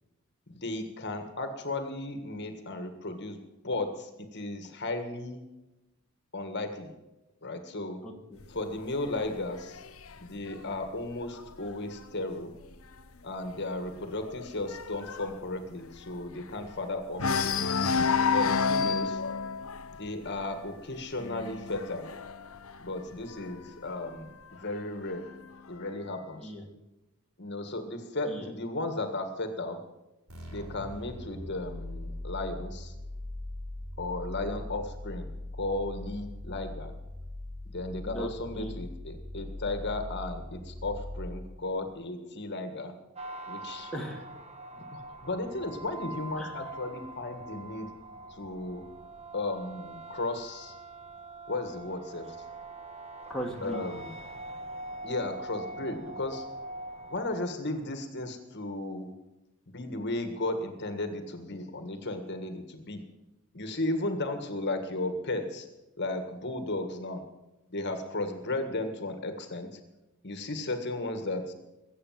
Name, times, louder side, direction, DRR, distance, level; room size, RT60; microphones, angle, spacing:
voice 1, 0.5-5.4 6.3-6.9 7.4-8.0 8.5-9.8 10.2-12.5 13.2-17.7 18.3-19.2 20.0-22.1 22.8-25.2 25.7-26.5 27.4-29.8 30.5-32.9 34.0-35.3 35.5-36.9 37.7-42.9 43.5-43.9 44.8-47.9 48.3-48.8 49.3-50.7 51.5-52.4 53.6-54.1 55.0-56.4 57.1-59.1 59.7-63.0 63.5-65.7 66.0-67.2 67.7-69.8 70.2-71.5, left 2 dB, 50° left, 7 dB, 1.7 m, -35 dB
voice 2, 8.0-8.4 26.4-26.7 28.3-28.5 36.4-36.6 38.0-38.8 43.9-44.3 46.4-46.6 53.3-53.8, equal, 5° left, -1 dB, 2.1 m, -38 dB
sound 1, 8.4-12.0 12.4-12.8 13.0-13.1 13.5-16.8 17.1-23.7 24.6-25.6, left 5 dB, 70° left, 0.8 m, -31 dB
sound 2, 30.3-41.7, left 1 dB, 85° right, 4.9 m, -41 dB
sound 3, 43.2-57.4, right 2 dB, 30° right, 1.5 m, -43 dB
22.0 x 8.4 x 7.5 m, 1.0 s
head